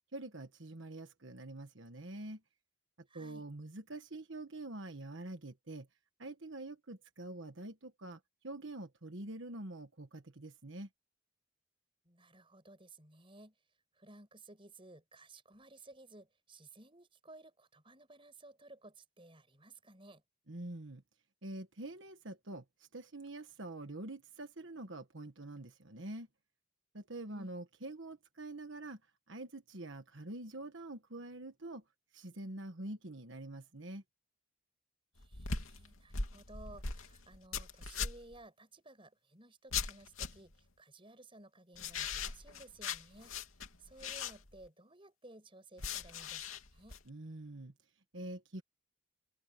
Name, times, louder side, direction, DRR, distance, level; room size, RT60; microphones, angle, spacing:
voice 1, 0.1-2.4 3.1-5.9 6.2-8.2 8.4-10.9 20.5-21.0 21.4-22.6 22.9-26.3 26.9-29.0 29.3-31.8 32.1-34.0 47.1-47.7 48.1-48.6, right 2 dB, 60° right, 1.4 m, -45 dB
voice 2, 3.1-3.5 12.1-13.5 14.0-20.2 27.2-27.6 35.2-43.4 43.8-46.9, right 2 dB, 25° right, 7.1 m, -56 dB
sound 1, 35.2-38.4 39.7-40.5 41.7-44.7 45.8-47.0, left 5 dB, 75° left, 2.8 m, -40 dB
open air
head